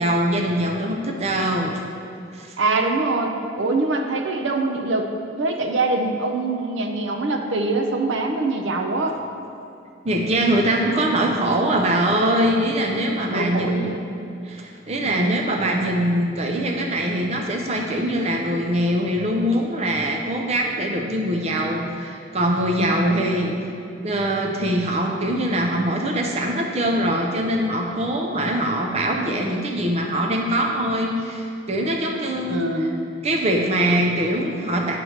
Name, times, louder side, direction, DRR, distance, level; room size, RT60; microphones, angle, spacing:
voice 1, 0.0-1.8 2.3-2.5 10.0-13.8 14.4-23.6 24.0-32.6 33.2-35.0, right 1 dB, 35° right, 1 dB, 0.5 m, -23 dB
voice 2, 2.6-5.1 5.4-9.2 13.3-14.0 15.0-15.3 22.8-23.1 32.4-33.0, right 2 dB, 75° right, 4 dB, 0.6 m, -24 dB
9.1 x 3.1 x 6.4 m, 2.5 s
head